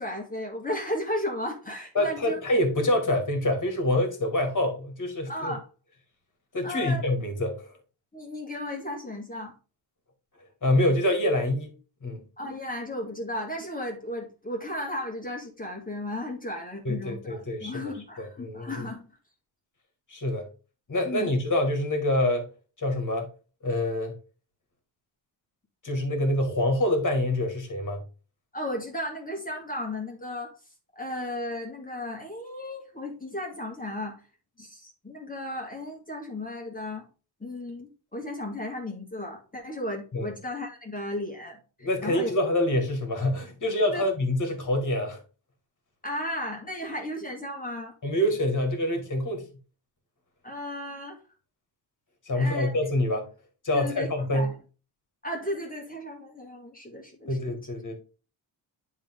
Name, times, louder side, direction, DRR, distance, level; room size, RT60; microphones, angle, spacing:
voice 1, 0.0-2.4 5.3-5.7 6.6-7.1 8.1-9.5 12.4-19.1 21.1-21.3 28.5-30.5 31.0-34.2 34.6-37.1 37.4-42.3 43.9-44.0 46.0-47.9 50.4-51.2 52.3-52.7 53.7-54.5 55.2-57.4, left 1 dB, 15° left, 2.0 m, -35 dB
voice 2, 2.0-5.5 6.5-7.7 10.6-11.7 12.0-12.2 16.9-17.9 18.2-18.8 20.1-20.5 20.9-22.5 22.8-23.3 23.6-24.1 25.8-28.0 40.1-40.3 41.8-45.2 48.0-49.5 52.3-53.3 53.6-54.5 57.3-58.0, left 1 dB, 40° left, 2.1 m, -26 dB
10.0 x 3.6 x 3.7 m
wide cardioid pair, 155°, 48 cm